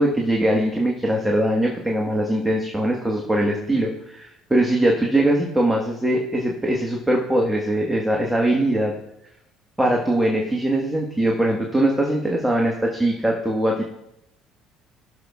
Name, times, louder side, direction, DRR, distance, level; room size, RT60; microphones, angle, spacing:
voice 1, 0.0-8.9 9.8-13.8, right 1 dB, 10° right, -1 dB, 1.4 m, -21 dB
17.0 x 6.7 x 2.4 m, 0.82 s
supercardioid pair, 75°, 0 cm